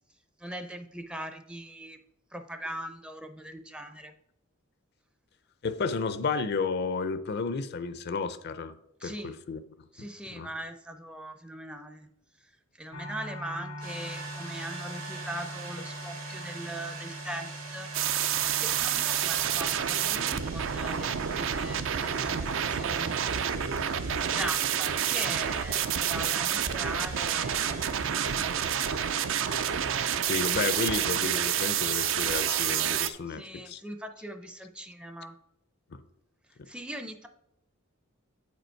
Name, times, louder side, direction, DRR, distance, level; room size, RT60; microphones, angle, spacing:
voice 1, 0.4-2.0 2.3-4.1 9.0-9.4 9.9-12.1 12.7-17.9 18.6-23.4 24.2-27.9 33.3-35.4 36.7-37.3, right 1 dB, 5° right, 7 dB, 0.5 m, -40 dB
voice 2, 5.6-8.7 9.0-9.6 10.3-10.5 30.3-33.8 35.9-36.0, left 4 dB, 50° left, 13 dB, 0.5 m, -32 dB
sound 1, 12.9-30.6, equal, 85° left, 1.3 m, -46 dB
sound 2, 13.8-31.2, right 4 dB, 80° right, 2.0 m, -43 dB
sound 3, 17.9-33.1, right 9 dB, 65° right, 0.5 m, -29 dB
8.3 x 5.2 x 4.5 m, 0.82 s
head